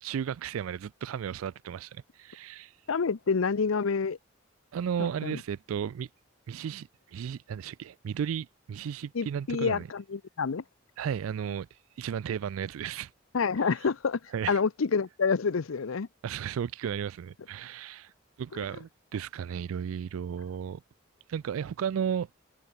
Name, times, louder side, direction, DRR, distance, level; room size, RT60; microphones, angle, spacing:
voice 1, 0.0-2.8 4.7-6.1 6.5-9.9 11.0-13.1 13.6-13.7 14.3-14.6 16.2-18.1 18.4-20.8 21.3-22.3, right 8 dB, 90° right, 0.3 m, -34 dB
voice 2, 2.9-4.2 5.0-5.4 9.1-10.6 13.3-16.1 18.5-18.6, left 5 dB, 85° left, 0.6 m, -28 dB
head